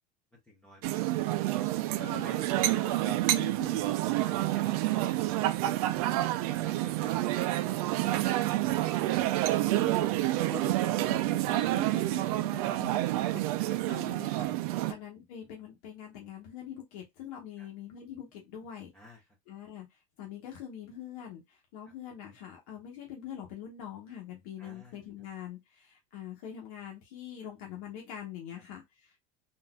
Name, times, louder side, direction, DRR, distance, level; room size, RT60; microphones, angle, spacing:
voice 1, 0.3-1.0 1.9-3.0 4.2-5.6 6.5-7.4 8.0-9.1 13.0-13.3 14.8-14.9 17.6-17.7 18.9-19.2 24.6-25.0, equal, 5° left, 0.7 m, -52 dB
sound 1, 0.8-14.9, right 15 dB, 80° right, 0.5 m, -28 dB
voice 2, 2.0-2.4 2.7-3.9 9.6-18.9 19.5-29.2, left 9 dB, 75° left, 1.1 m, -44 dB
3.9 x 2.6 x 2.3 m
cardioid pair, 175°, 19 cm